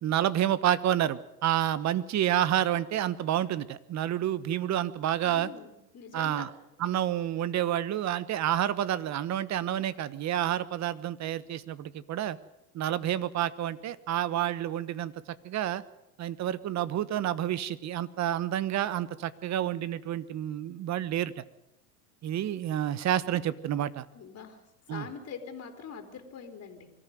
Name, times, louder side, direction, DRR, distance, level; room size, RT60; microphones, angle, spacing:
voice 1, 0.0-5.5 6.1-6.5 6.8-12.4 12.7-15.8 16.2-21.4 22.2-24.1 24.9-25.0, right 11 dB, 35° right, 17 dB, 1.2 m, -29 dB
voice 2, 5.2-6.4 24.1-24.6 24.9-26.9, left 6 dB, 30° left, 5 dB, 3.7 m, -43 dB
24.0 x 14.0 x 9.4 m, 0.89 s
supercardioid pair, 105°, 46 cm